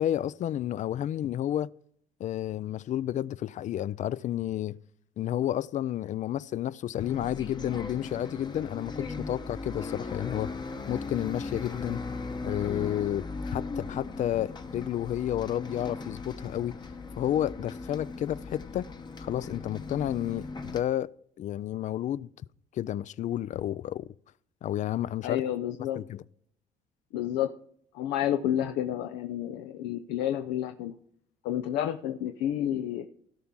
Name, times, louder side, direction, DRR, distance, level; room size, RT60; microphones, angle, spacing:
voice 1, 0.0-1.7 2.2-4.8 5.2-10.5 10.9-12.0 12.4-16.8 17.2-18.9 19.2-21.1 21.4-22.3 22.7-24.1 24.6-25.4 26.0-26.2, left 11 dB, 45° left, 0.4 m, -31 dB
Bus, 7.0-20.8, left 3 dB, 25° left, 0.9 m, -38 dB
voice 2, 25.2-26.0 27.1-27.5 27.9-30.9 31.4-33.1, left 11 dB, 85° left, 0.6 m, -30 dB
16.5 x 5.8 x 3.7 m
cardioid pair, 100°, 17 cm